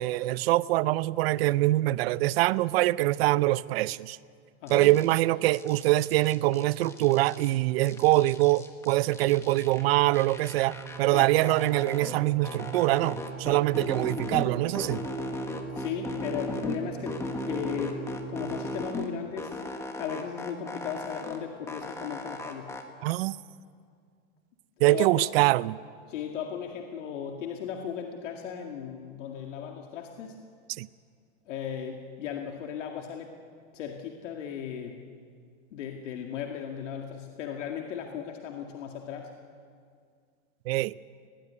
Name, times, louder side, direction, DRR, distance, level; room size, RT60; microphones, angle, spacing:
voice 1, 0.0-4.2 4.7-15.1 23.0-23.4 24.8-25.8 30.8-30.9 40.7-40.9, right 17 dB, 55° right, 19 dB, 0.6 m, -24 dB
voice 2, 4.6-4.9 11.1-11.3 15.8-17.1 17.4-19.6 20.0-22.7 24.9-25.3 26.1-30.4 31.5-33.3 33.7-35.0 35.7-39.3, left 8 dB, 80° left, 2 dB, 2.2 m, -36 dB
sound 1, 4.7-5.2 5.5-7.5 7.8-9.8 10.1-12.1 12.4-14.5 14.7-16.8 17.1-19.1 19.4-21.4 21.7-22.8, left 2 dB, 10° left, 1.5 m, -37 dB
sound 2, 9.4-18.8, right 10 dB, 20° right, 0.6 m, -42 dB
20.5 x 18.5 x 9.6 m, 2.1 s
supercardioid pair, 160°, 36 cm